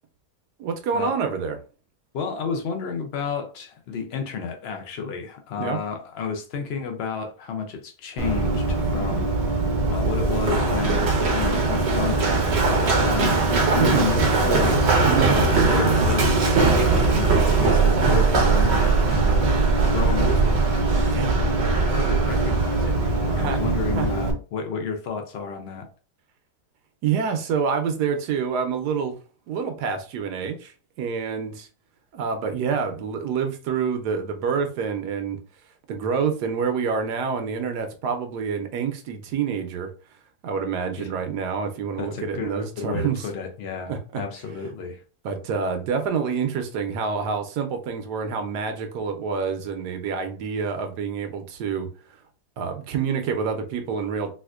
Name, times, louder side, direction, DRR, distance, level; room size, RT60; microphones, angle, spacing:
voice 1, 0.6-1.6 5.6-5.8 13.8-14.1 15.0-15.4 21.1-21.4 23.4-23.6 24.0-24.1 27.0-29.2 29.5-31.7 32.1-35.4 35.9-39.9 40.4-43.3 43.9-44.2 45.2-51.9 52.6-54.3, right 6 dB, 85° right, 1.2 m, -27 dB
voice 2, 2.1-9.3 9.9-13.4 13.7-15.0 15.3-16.3 16.8-19.6 19.9-20.6 21.4-25.9 41.0-41.1 42.0-45.0, left 5 dB, 70° left, 0.6 m, -31 dB
Run, 8.2-24.3, right 3 dB, 55° right, 0.7 m, -20 dB
4.2 x 2.5 x 2.4 m
omnidirectional pair, 1.7 m